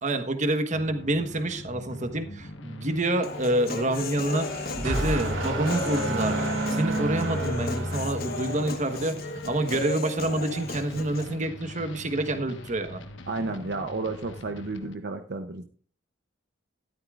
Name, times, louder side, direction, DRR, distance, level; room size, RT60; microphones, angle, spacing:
voice 1, 0.0-6.4 6.7-9.1 9.5-13.0, right 1 dB, 40° right, 8 dB, 1.3 m, -27 dB
sound 1, 0.7-14.9, left 1 dB, 70° left, 1.3 m, -42 dB
Human voice, 3.2-11.2, left 2 dB, 50° left, 1.4 m, -35 dB
sound 2, 4.2-8.7, right 1 dB, 85° right, 3.2 m, -30 dB
voice 2, 13.3-15.6, right 3 dB, 60° right, 7 dB, 0.8 m, -32 dB
13.0 x 12.5 x 2.5 m, 0.42 s
head